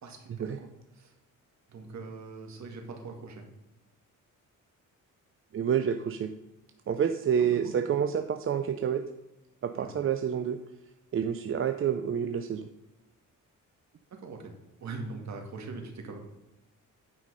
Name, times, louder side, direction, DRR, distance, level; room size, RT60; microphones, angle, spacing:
voice 1, 0.0-0.7 0.9-1.1 1.7-3.4 7.4-7.8 9.8-9.9 14.1-16.2, right 3 dB, 60° right, 3 dB, 2.2 m, -42 dB
voice 2, 5.5-6.3 6.9-9.1 9.6-10.6 11.1-12.7, right 8 dB, 40° right, 7 dB, 0.6 m, -28 dB
9.1 x 5.6 x 5.4 m, 0.99 s
cardioid pair, 120°, 32 cm